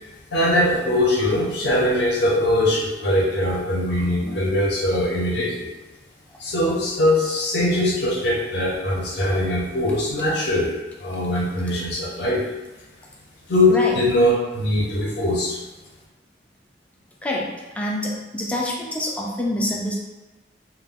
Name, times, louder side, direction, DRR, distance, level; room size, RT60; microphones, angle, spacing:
voice 1, 0.3-5.7 6.4-10.7 11.0-12.5 13.5-15.6, left 1 dB, 70° left, -4 dB, 0.7 m, -21 dB
voice 2, 17.2-19.9, left 1 dB, 10° left, -2 dB, 0.4 m, -26 dB
2.3 x 2.1 x 3.5 m, 1.2 s
head